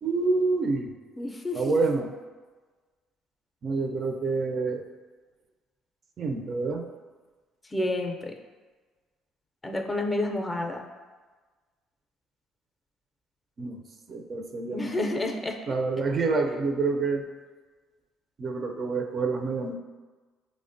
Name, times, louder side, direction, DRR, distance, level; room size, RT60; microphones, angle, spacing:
voice 1, 0.0-0.9 1.5-2.1 3.6-4.9 6.2-6.9 13.6-13.8 14.1-15.0 15.7-17.3 18.4-19.7, right 3 dB, 45° right, 4 dB, 0.4 m, -27 dB
voice 2, 1.2-1.7 7.7-8.3 9.6-10.8 14.7-15.6, left 2 dB, 20° left, 3 dB, 0.4 m, -29 dB
4.9 x 2.1 x 2.5 m, 1.3 s
supercardioid pair, 65°, 0 cm